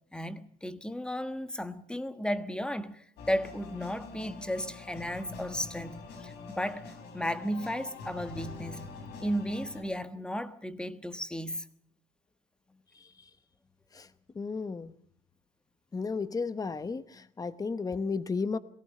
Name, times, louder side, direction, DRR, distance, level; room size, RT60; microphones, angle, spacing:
voice 1, 0.1-8.8 9.2-11.7, equal, 5° left, 1.3 m, -34 dB
sound 1, 3.2-9.8, left 4 dB, 85° left, 4.6 m, -44 dB
voice 2, 12.9-13.3 13.9-14.1 14.3-14.9 15.9-18.6, left 4 dB, 20° left, 0.9 m, -34 dB
22.5 x 18.0 x 6.6 m
cardioid pair, 110°, 17 cm